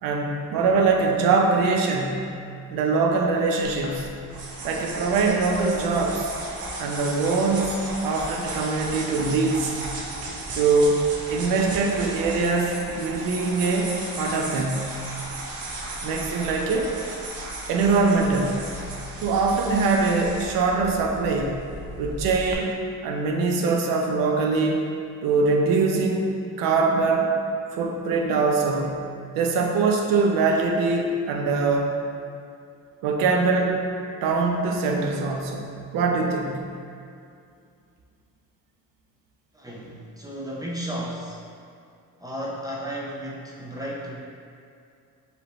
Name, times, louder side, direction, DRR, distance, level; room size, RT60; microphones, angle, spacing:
voice 1, 0.0-2.3 2.7-4.1 4.6-6.3 6.8-9.8 10.5-15.0 16.0-16.9 17.7-18.7 19.2-21.6 22.0-22.8 23.0-24.9 25.2-26.3 26.6-27.3 27.8-29.0 29.3-31.9 33.0-33.8 34.2-35.7 35.9-36.6, right 4 dB, 90° right, 1 dB, 0.7 m, -23 dB
sound 1, 3.6-22.5, right 2 dB, 50° right, 0.8 m, -35 dB
voice 2, 39.5-41.4 42.2-44.1, equal, 10° right, -4 dB, 0.4 m, -33 dB
5.1 x 3.3 x 3.0 m, 2.4 s
cardioid pair, 160°, 33 cm